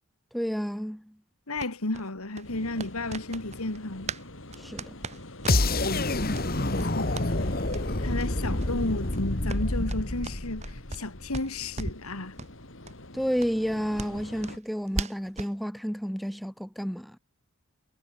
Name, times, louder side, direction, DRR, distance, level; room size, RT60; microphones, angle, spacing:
voice 1, 0.3-1.1 4.6-4.9 13.1-17.2, equal, ahead, 0.8 m, -31 dB
voice 2, 1.5-4.1 5.8-6.3 6.7-7.6 8.0-12.4, left 2 dB, 85° left, 2.5 m, -33 dB
sound 1, 1.6-4.3 4.5-5.9 6.3-6.5 6.7-7.3 7.7-7.8 8.2-8.3 8.5-8.7 9.0-11.1 11.3-12.1 12.4-12.5 12.8-12.9 13.4-15.6, right 3 dB, 30° right, 1.3 m, -38 dB
sound 2, 2.4-14.6, left 2 dB, 60° left, 3.4 m, -44 dB
sound 3, 5.5-11.4, left 2 dB, 45° left, 1.9 m, -28 dB
head